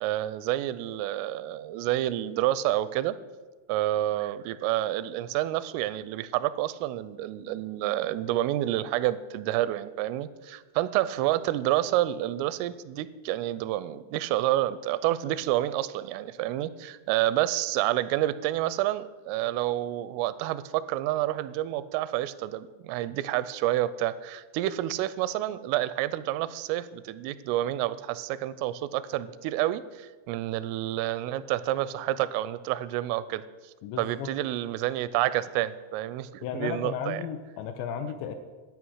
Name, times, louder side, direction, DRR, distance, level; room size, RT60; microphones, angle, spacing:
voice 1, 0.0-3.2 3.7-33.4 34.0-37.2, right 14 dB, 85° right, 16 dB, 3.1 m, -29 dB
voice 2, 33.8-34.3 36.4-38.3, left 7 dB, 85° left, 8 dB, 2.6 m, -34 dB
13.0 x 8.9 x 6.3 m, 1.3 s
omnidirectional pair, 5.7 m